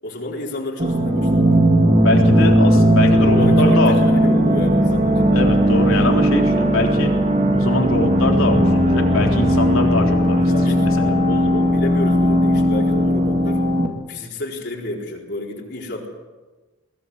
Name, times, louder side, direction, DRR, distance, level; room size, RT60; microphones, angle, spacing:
voice 1, 0.0-1.5 3.3-5.2 10.4-10.8 11.3-13.6 14.1-16.1, left 1 dB, 55° left, -1 dB, 4.3 m, -30 dB
sound 1, 0.8-13.9, equal, 35° right, 2.0 m, -17 dB
voice 2, 2.0-4.0 5.3-7.2 7.5-11.2, left 2 dB, 80° left, 1 dB, 3.8 m, -23 dB
21.5 x 17.0 x 8.1 m, 1.2 s
head